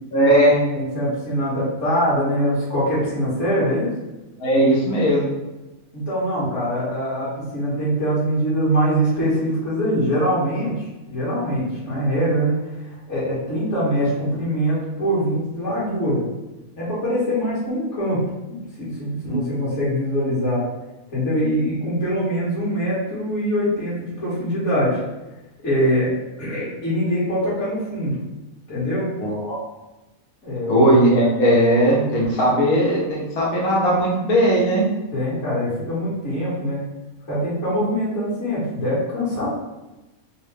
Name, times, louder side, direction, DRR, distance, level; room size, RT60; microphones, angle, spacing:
voice 1, 0.1-0.6 4.4-5.2 19.2-19.4 29.2-29.6 30.7-34.8, right 1 dB, 85° left, -4 dB, 1.4 m, -18 dB
voice 2, 0.7-3.9 5.9-12.6 13.1-16.2 16.7-18.2 18.5-20.6 21.1-25.0 25.6-26.1 26.4-28.2 28.7-29.1 30.4-30.7 35.1-36.8 37.3-39.5, equal, 55° left, -9 dB, 1.8 m, -23 dB
4.1 x 2.0 x 3.2 m, 1.1 s
omnidirectional pair, 1.5 m